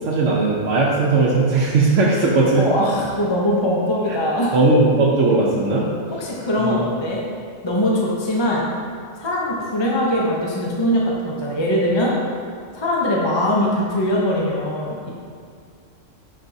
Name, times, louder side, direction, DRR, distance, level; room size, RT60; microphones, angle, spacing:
voice 1, 0.0-2.6 4.1-4.2 4.5-5.9 6.6-6.8, right 3 dB, 75° right, -4 dB, 1.1 m, -18 dB
voice 2, 2.6-4.5 6.1-7.2 7.6-8.7 9.2-12.1 12.7-15.1, left 1 dB, 25° left, -3 dB, 0.7 m, -21 dB
10.5 x 4.4 x 2.7 m, 2.2 s
omnidirectional pair, 1.3 m